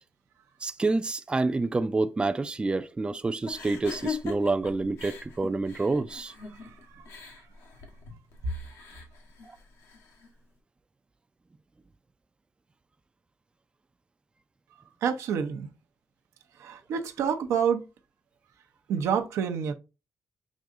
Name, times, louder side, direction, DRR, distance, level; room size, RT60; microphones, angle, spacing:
voice 1, 0.6-6.3, right 3 dB, 20° right, 0.4 m, -28 dB
sound 1, 3.5-10.3, left 5 dB, 85° left, 1.1 m, -41 dB
voice 2, 6.6-7.0 15.0-15.7 16.6-17.8 18.9-19.7, right 7 dB, 80° right, 0.6 m, -28 dB
6.1 x 2.6 x 2.4 m
cardioid pair, 70°, 5 cm